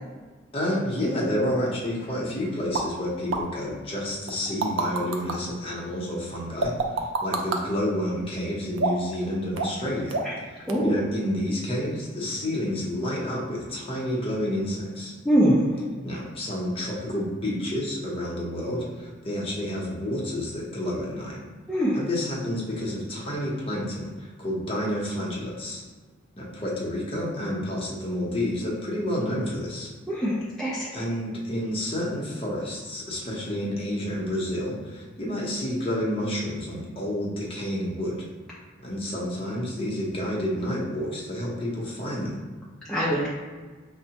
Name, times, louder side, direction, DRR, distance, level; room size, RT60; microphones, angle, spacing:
voice 1, 0.5-10.2 10.8-15.1 16.0-21.4 21.9-25.8 26.4-29.9 30.9-38.1 38.8-42.4, left 1 dB, 30° left, -4 dB, 0.8 m, -29 dB
sound 1, 2.7-2.9 3.3-3.4 4.3-5.4 6.6-7.6 8.8-9.1 9.6-9.8 10.1-10.4 10.7-10.8, right 3 dB, 85° right, 0.5 m, -26 dB
voice 2, 10.6-10.9 15.2-15.8 21.7-22.0 30.1-31.0 42.9-43.3, equal, 5° left, -8 dB, 0.5 m, -23 dB
5.2 x 2.1 x 2.8 m, 1.4 s
head